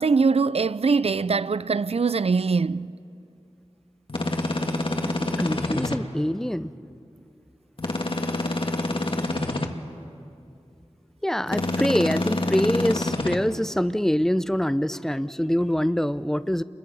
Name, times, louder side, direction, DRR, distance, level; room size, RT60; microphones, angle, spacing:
voice 1, 0.0-2.9, right 4 dB, 65° right, 0.5 m, -22 dB
sound 1, 4.1-6.0 7.8-9.7 11.5-13.4, left 2 dB, 50° left, 1.6 m, -26 dB
voice 2, 5.0-6.7 11.2-16.6, equal, 5° left, 0.6 m, -25 dB
30.0 x 21.5 x 5.5 m
wide cardioid pair, 55°, 11 cm